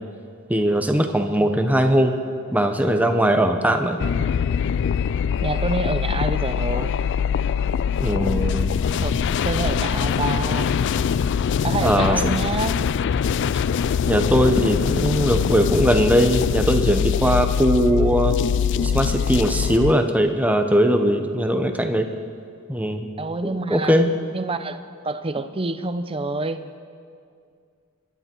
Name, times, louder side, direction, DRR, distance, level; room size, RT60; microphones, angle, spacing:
voice 1, 0.5-2.1 2.5-4.0 8.0-8.7 11.8-12.2 14.1-18.4 18.8-22.1 22.7-23.1 23.5-24.1, equal, 5° right, 6 dB, 0.9 m, -20 dB
sound 1, 4.0-19.9, left 7 dB, 55° left, 0.3 m, -23 dB
voice 2, 5.4-6.9 9.0-9.2 9.4-10.7 11.6-12.8 13.4-13.6 23.2-24.0 24.3-26.6, right 3 dB, 25° right, 10 dB, 0.7 m, -27 dB
25.5 x 11.5 x 4.6 m, 2.3 s
head